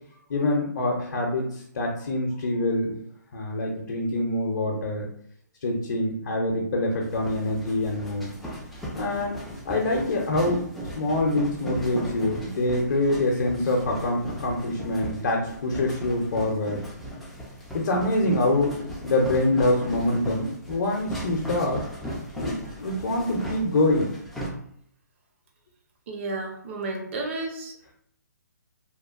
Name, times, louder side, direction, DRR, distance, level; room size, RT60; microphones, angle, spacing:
voice 1, 0.3-1.5 1.7-2.9 3.3-5.1 5.6-8.3 8.9-9.4 9.6-10.6 11.0-16.8 17.7-18.7 19.0-21.8 22.4-22.5 22.8-24.1, left 1 dB, 55° left, -1 dB, 0.6 m, -25 dB
sound 1, 7.0-24.5, equal, ahead, 0.3 m, -37 dB
voice 2, 26.1-27.8, right 2 dB, 40° right, 1 dB, 0.6 m, -32 dB
2.9 x 2.1 x 2.3 m, 0.66 s
hypercardioid pair, 155°, 10 cm